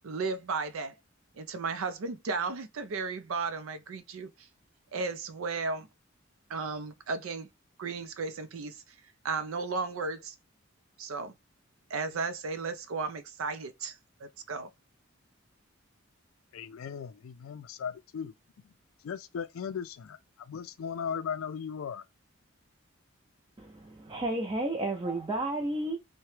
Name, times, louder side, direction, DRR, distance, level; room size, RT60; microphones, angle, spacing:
voice 1, 0.0-0.9 1.4-4.3 4.9-5.9 6.5-7.5 7.8-8.8 9.2-10.3 11.0-11.3 11.9-14.7, right 4 dB, 85° right, 0.5 m, -34 dB
voice 2, 16.5-18.3 19.0-22.1, left 7 dB, 85° left, 0.4 m, -37 dB
voice 3, 23.6-26.0, right 2 dB, 20° right, 0.4 m, -32 dB
2.8 x 2.1 x 3.1 m
head